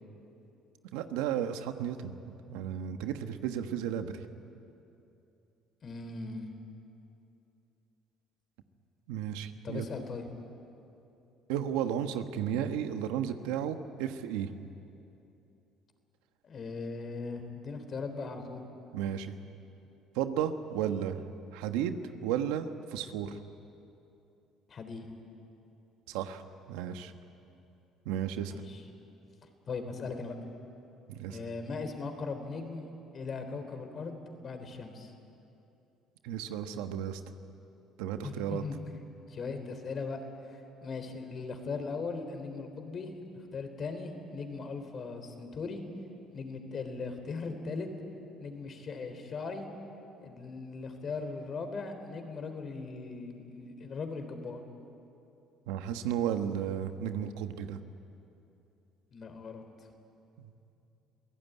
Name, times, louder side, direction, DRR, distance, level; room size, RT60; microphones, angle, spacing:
voice 1, 0.9-4.2 9.1-9.8 11.5-14.5 18.9-19.4 20.1-21.2 21.5-23.4 26.1-26.4 26.7-27.1 28.0-28.6 31.1-31.4 36.2-37.2 38.0-38.6 55.7-57.8 60.4-60.5, right 9 dB, 90° right, 8 dB, 1.2 m, -33 dB
voice 2, 5.8-6.5 9.6-10.3 16.4-18.6 24.7-25.1 28.4-28.8 29.7-30.4 31.3-32.9 33.1-35.1 38.2-39.0 39.3-40.2 40.5-45.8 46.3-47.9 48.4-49.7 50.2-54.6 59.1-59.6, left 4 dB, 45° left, 7 dB, 3.6 m, -39 dB
27.0 x 17.0 x 9.4 m, 2.8 s
supercardioid pair, 90°, 0 cm